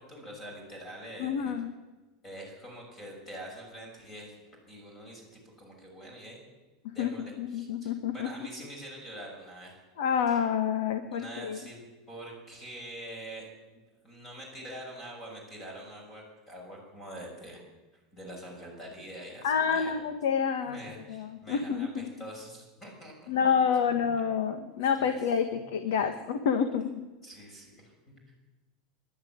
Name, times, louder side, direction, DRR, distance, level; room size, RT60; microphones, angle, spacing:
voice 1, 0.0-1.5 2.2-6.4 6.9-9.8 10.3-10.4 11.1-11.8 12.1-17.6 17.9-20.0 20.7-23.5 23.9-24.0 25.0-25.2 26.0-26.1 27.2-28.3, right 1 dB, 15° left, 0 dB, 6.5 m, -45 dB
voice 2, 1.2-1.7 6.8-8.3 10.0-11.6 19.4-22.1 23.3-27.1, left 7 dB, 75° left, 8 dB, 1.7 m, -28 dB
24.5 x 12.0 x 9.6 m, 1.2 s
supercardioid pair, 165°, 0 cm